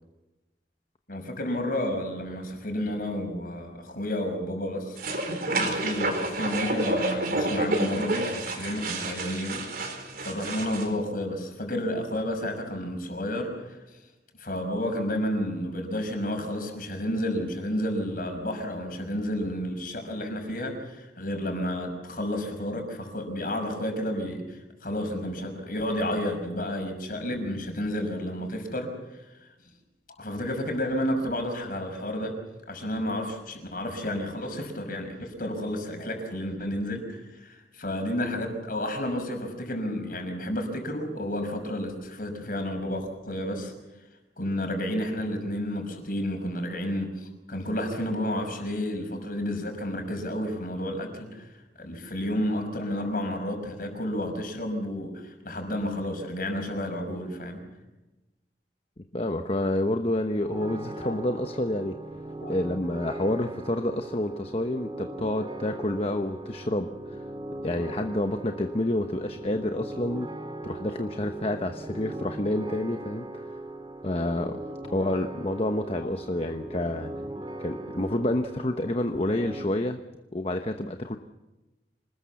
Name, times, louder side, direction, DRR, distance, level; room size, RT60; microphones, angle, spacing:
voice 1, 1.1-5.0 5.5-9.7 10.2-13.8 14.4-29.2 30.2-32.4 32.7-43.7 44.4-51.5 51.8-57.6 61.0-61.2 62.4-62.6 74.8-75.0, left 1 dB, 50° left, 4 dB, 5.7 m, -31 dB
sound 1, 5.0-10.9, right 2 dB, 55° right, 4.3 m, -29 dB
voice 2, 59.1-62.0 62.5-67.2 67.6-70.3 70.6-73.6 74.0-74.6 74.9-77.1 77.6-80.0 80.3-81.2, left 1 dB, 35° left, 6 dB, 1.0 m, -29 dB
sound 2, 60.4-79.6, right 1 dB, 25° right, 2.2 m, -39 dB
26.5 x 20.0 x 7.1 m, 1.0 s
head